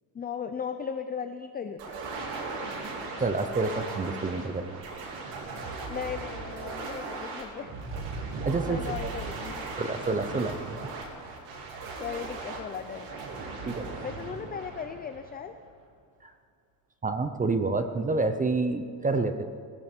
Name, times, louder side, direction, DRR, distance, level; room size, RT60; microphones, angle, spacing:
voice 1, 0.1-1.9 5.9-7.7 8.7-9.6 12.0-13.1 14.0-15.5, left 7 dB, 20° left, 8 dB, 0.4 m, -37 dB
sound 1, 1.8-15.7, right 3 dB, 90° right, 4.2 m, -38 dB
voice 2, 3.2-4.8 8.3-8.8 9.8-10.6 13.7-13.9 16.2-16.3 17.0-19.4, right 3 dB, 15° right, 8 dB, 0.7 m, -28 dB
20.0 x 15.0 x 4.5 m, 2.4 s
cardioid pair, 155°, 49 cm